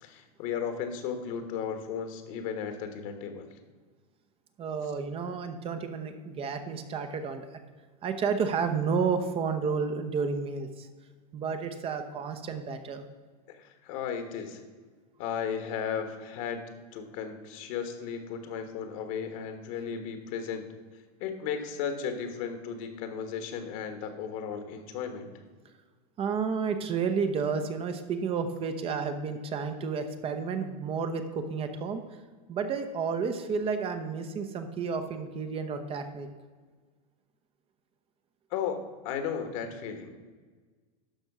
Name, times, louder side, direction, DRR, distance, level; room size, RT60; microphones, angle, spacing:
voice 1, 0.0-3.5 13.5-14.6 15.2-16.6 16.9-20.6 21.2-25.3 38.5-38.8 39.0-40.1, left 7 dB, 55° left, 7 dB, 1.5 m, -35 dB
voice 2, 4.6-7.5 8.0-10.9 11.3-13.0 26.2-32.0 32.5-36.3, right 5 dB, 30° right, 7 dB, 0.8 m, -31 dB
12.0 x 4.5 x 6.1 m, 1.4 s
supercardioid pair, 130°, 20 cm